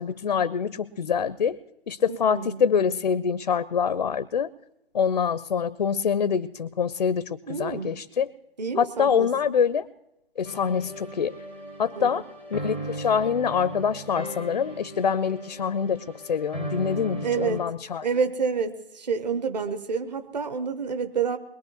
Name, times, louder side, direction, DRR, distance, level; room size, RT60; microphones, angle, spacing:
voice 1, 0.0-1.6 1.9-4.5 4.9-8.3 8.8-9.9 10.4-11.3 11.8-12.2 12.5-18.0, left 7 dB, 45° left, 16 dB, 0.5 m, -25 dB
voice 2, 2.1-2.6 7.5-7.9 8.6-9.3 12.0-12.2 17.2-17.6 18.0-21.4, right 5 dB, 40° right, 9 dB, 0.9 m, -28 dB
sound 1, 10.4-17.6, right 2 dB, 10° right, 0.5 m, -37 dB
22.0 x 21.5 x 3.0 m, 0.91 s
figure-of-eight pair, 140°, 31 cm